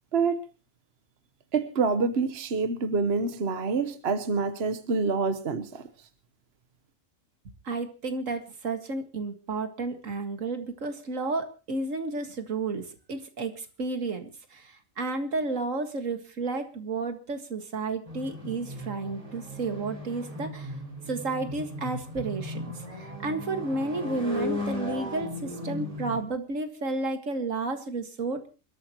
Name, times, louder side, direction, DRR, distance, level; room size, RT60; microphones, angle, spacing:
voice 1, 1.5-5.9, right 4 dB, 50° right, 1.3 m, -27 dB
voice 2, 7.6-20.8 21.1-28.5, right 3 dB, 70° right, 2.2 m, -32 dB
sound 1, 18.0-26.2, left 1 dB, 25° right, 5.5 m, -36 dB
27.5 x 13.5 x 3.0 m
omnidirectional pair, 1.4 m